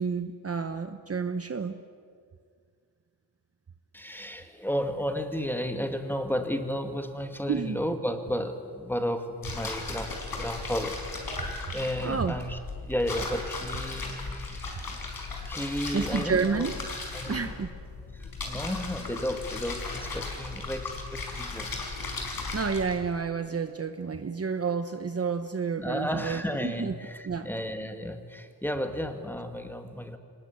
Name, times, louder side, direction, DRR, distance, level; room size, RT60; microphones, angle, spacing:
voice 1, 0.0-1.8 7.5-7.8 12.0-12.3 15.9-16.8 17.3-17.7 22.5-26.9 27.2-27.5, right 5 dB, 35° right, 8 dB, 1.0 m, -30 dB
voice 2, 3.9-15.0 15.5-16.8 17.1-17.5 18.1-21.8 25.8-30.2, equal, 5° left, 6 dB, 2.0 m, -33 dB
sound 1, 9.4-23.0, left 3 dB, 55° left, 5.0 m, -36 dB
25.0 x 20.0 x 9.6 m, 2.1 s
wide cardioid pair, 115°, 41 cm